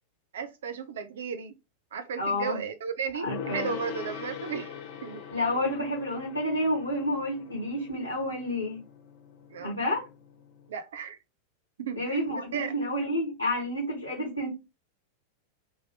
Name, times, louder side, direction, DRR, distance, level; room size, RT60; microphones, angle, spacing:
voice 1, 0.3-1.5 1.9-4.7 5.0-5.2 9.5-9.8 10.7-11.2 11.8-12.7, right 6 dB, 60° right, 0.6 m, -35 dB
voice 2, 2.2-2.6 3.2-3.7 5.3-8.8 9.6-10.0 11.9-14.5, left 1 dB, 85° right, 1.3 m, -30 dB
Gong, 3.3-10.7, left 7 dB, 50° left, 1.0 m, -42 dB
2.9 x 2.7 x 2.8 m
figure-of-eight pair, 90°, 0 cm